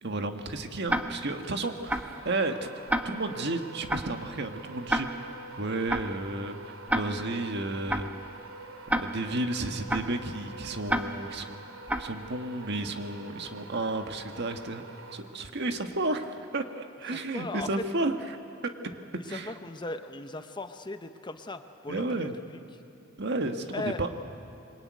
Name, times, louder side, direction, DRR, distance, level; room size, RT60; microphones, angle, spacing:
voice 1, 0.0-2.7 3.0-5.3 5.6-8.1 8.9-11.6 12.0-14.8 15.1-18.2 18.6-18.7 19.3-19.5 21.9-22.3 23.2-24.1, right 2 dB, 55° right, 6 dB, 1.6 m, -32 dB
Tick-tock, 0.9-1.4 1.9-2.2 2.9-3.4 3.9-4.2 4.9-5.4 5.9-6.2 6.9-7.4 7.9-8.2 8.9-9.4 9.9-10.2 10.9-11.4 11.9-12.2, right 1 dB, 5° right, 1.2 m, -30 dB
sound 1, 1.4-15.7, right 3 dB, 75° right, 2.7 m, -46 dB
voice 2, 17.1-17.8 19.2-22.5 23.7-24.0, left 2 dB, 20° left, 8 dB, 0.9 m, -38 dB
26.5 x 23.5 x 9.5 m, 2.7 s
head